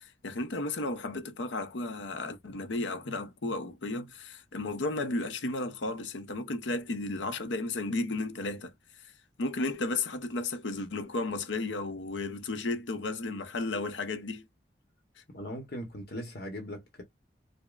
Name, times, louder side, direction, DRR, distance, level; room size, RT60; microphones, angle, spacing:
voice 1, 0.0-8.7 9.0-9.1 9.4-14.5, left 2 dB, 80° left, 0.7 m, -33 dB
voice 2, 15.3-17.0, equal, 55° left, 0.9 m, -39 dB
4.9 x 2.1 x 2.4 m
head